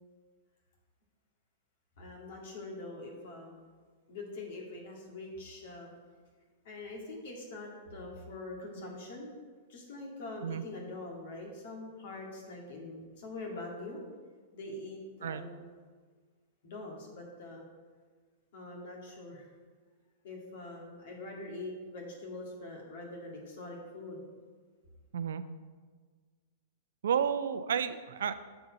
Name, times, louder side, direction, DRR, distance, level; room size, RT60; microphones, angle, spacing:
voice 1, 2.0-3.7 4.1-5.9 6.6-9.3 9.7-14.0 14.5-15.7 16.6-17.6 18.5-19.5 20.2-24.3, left 2 dB, 70° left, 0 dB, 2.0 m, -44 dB
voice 2, 27.0-28.3, right 7 dB, 80° right, 12 dB, 0.4 m, -31 dB
6.8 x 3.9 x 6.3 m, 1.5 s
hypercardioid pair, 115°, 0 cm